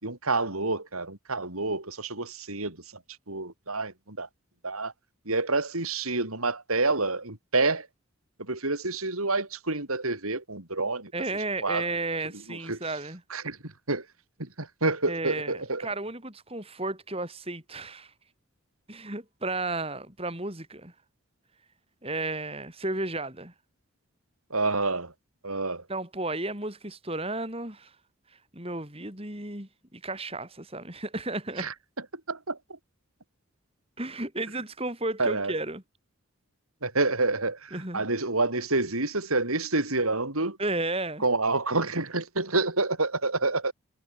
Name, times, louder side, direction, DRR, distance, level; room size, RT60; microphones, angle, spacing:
voice 1, 0.0-2.8 3.3-4.3 4.6-4.9 5.3-7.9 8.5-11.1 11.6-11.8 12.5-12.8 13.3-14.0 14.4-15.9 24.5-25.1 25.4-25.8 31.6-31.7 32.3-32.6 35.2-35.5 36.8-40.6 41.2-43.7, right 3 dB, 90° right, 5.8 m, -28 dB
voice 2, 11.1-13.2 15.1-18.1 18.9-20.9 22.0-23.5 25.9-27.9 28.5-31.7 34.0-35.8 37.7-38.1 40.6-41.2, right 2 dB, 25° right, 4.5 m, -33 dB
head